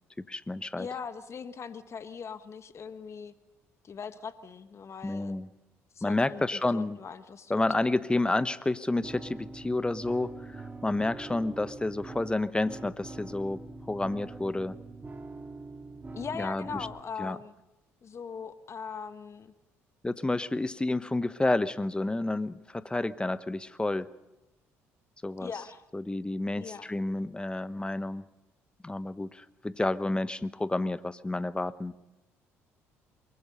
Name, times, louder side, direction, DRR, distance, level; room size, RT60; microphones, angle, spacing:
voice 1, 0.2-0.9 5.0-5.5 6.0-7.0 7.5-13.6 13.9-14.8 16.4-16.9 17.2-17.4 20.0-24.1 25.2-25.5 25.9-28.2 28.8-31.9, left 2 dB, 15° left, 15 dB, 1.0 m, -30 dB
voice 2, 0.8-3.3 3.8-5.4 5.9-7.6 16.1-17.5 18.0-19.5 25.4-25.8 26.5-26.9, left 6 dB, 40° left, 12 dB, 1.3 m, -40 dB
sound 1, 9.0-17.0, right 3 dB, 25° right, 3.0 m, -44 dB
23.5 x 22.0 x 5.4 m, 0.97 s
hypercardioid pair, 55°, 7 cm